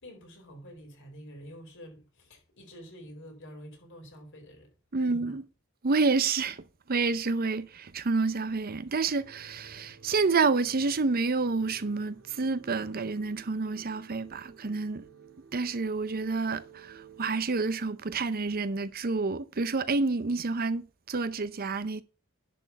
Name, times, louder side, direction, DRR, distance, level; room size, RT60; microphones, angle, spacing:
voice 1, 0.0-5.4, equal, 60° left, 4.3 m, -48 dB
voice 2, 4.9-5.4 5.8-6.6 6.9-15.1 15.5-22.0, right 4 dB, 45° right, 0.6 m, -29 dB
sound 1, 9.1-17.3, right 5 dB, 85° right, 3.0 m, -54 dB
11.0 x 4.3 x 7.0 m
head